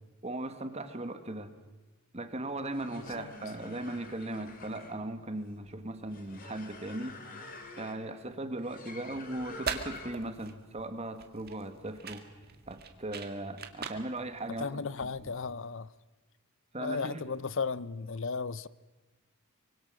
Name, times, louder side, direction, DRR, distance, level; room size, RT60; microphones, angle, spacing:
voice 1, 0.2-1.5 2.1-7.2 7.7-12.2 12.7-14.8 15.2-15.3 16.7-17.2, right 1 dB, 30° right, 1.8 m, -38 dB
sound 1, 2.7-10.4, left 3 dB, 40° left, 2.8 m, -49 dB
voice 2, 3.0-3.3 14.6-15.9 16.8-18.7, left 4 dB, 60° left, 0.7 m, -35 dB
sound 2, 9.4-15.4, right 6 dB, 45° right, 1.9 m, -42 dB
25.0 x 24.5 x 6.4 m
head